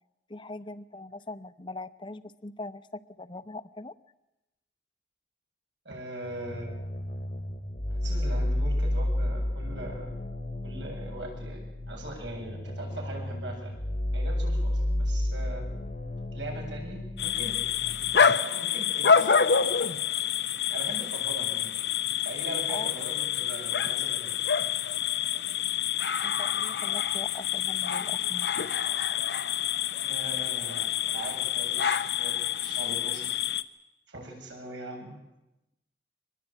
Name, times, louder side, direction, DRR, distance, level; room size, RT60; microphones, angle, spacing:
voice 1, 0.3-3.9 22.7-22.9 26.2-28.5, left 2 dB, 25° left, 12 dB, 0.8 m, -41 dB
voice 2, 5.8-6.7 7.9-10.3 10.6-11.6 11.9-13.7 14.1-15.7 16.3-17.6 18.3-19.3 20.7-21.9 22.2-24.3 30.0-33.4 34.1-35.2, right 1 dB, 90° right, 1 dB, 7.9 m, -41 dB
sound 1, 6.2-18.2, left 1 dB, 40° left, 1.3 m, -32 dB
sound 2, 17.2-33.6, left 7 dB, 65° left, 0.9 m, -27 dB
24.0 x 20.5 x 8.9 m, 0.94 s
head